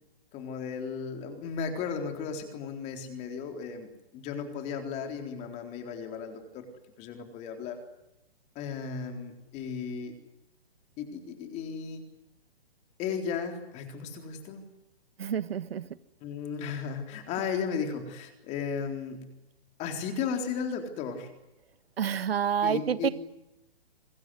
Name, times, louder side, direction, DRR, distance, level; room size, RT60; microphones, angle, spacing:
voice 1, 0.3-6.6 7.0-7.8 8.6-10.1 11.0-12.0 13.0-14.6 16.2-19.3 19.8-21.3 22.6-23.1, left 6 dB, 20° left, 5 dB, 4.0 m, -35 dB
voice 2, 15.2-15.9 22.0-23.1, right 8 dB, 75° right, 14 dB, 1.5 m, -28 dB
25.5 x 21.0 x 9.7 m, 0.93 s
hypercardioid pair, 155°, 31 cm